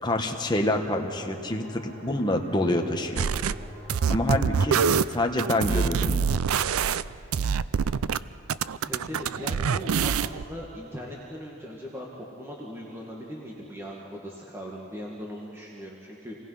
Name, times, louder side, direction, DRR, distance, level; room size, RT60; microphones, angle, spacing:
voice 1, 0.0-3.3 4.1-4.8 5.1-6.3, left 1 dB, 20° left, 3 dB, 1.3 m, -27 dB
sound 1, 0.6-6.0, left 1 dB, 60° right, 6.9 m, -46 dB
sound 2, 3.2-3.5 3.9-8.2 8.5-10.4, right 6 dB, 85° right, 0.5 m, -25 dB
voice 2, 8.8-12.1 12.4-16.4, equal, 10° right, -3 dB, 1.7 m, -39 dB
27.0 x 19.0 x 5.7 m, 2.7 s
head